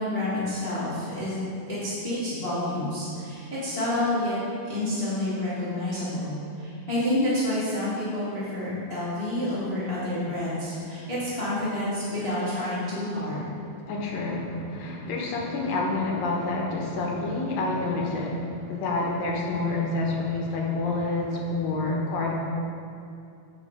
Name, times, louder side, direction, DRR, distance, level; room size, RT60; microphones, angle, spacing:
voice 1, 0.0-1.4 1.7-4.3 4.6-13.5, left 1 dB, 20° left, -12 dB, 1.8 m, -29 dB
voice 2, 13.8-22.3, left 2 dB, 80° left, -2 dB, 2.8 m, -28 dB
9.1 x 5.9 x 5.0 m, 2.5 s
omnidirectional pair, 4.0 m